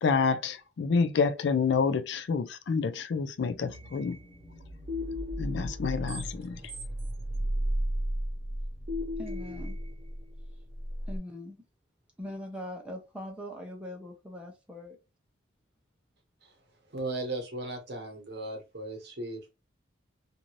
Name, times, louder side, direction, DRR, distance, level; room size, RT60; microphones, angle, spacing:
voice 1, 0.0-4.2 5.4-6.6, left 5 dB, 60° left, 0.3 m, -28 dB
sound 1, 3.4-11.2, equal, 35° right, 1.0 m, -34 dB
voice 2, 9.2-9.8 11.1-11.6 12.2-15.0, left 1 dB, 5° right, 0.7 m, -41 dB
voice 3, 16.9-19.5, right 2 dB, 55° right, 1.1 m, -36 dB
2.7 x 2.5 x 3.0 m
head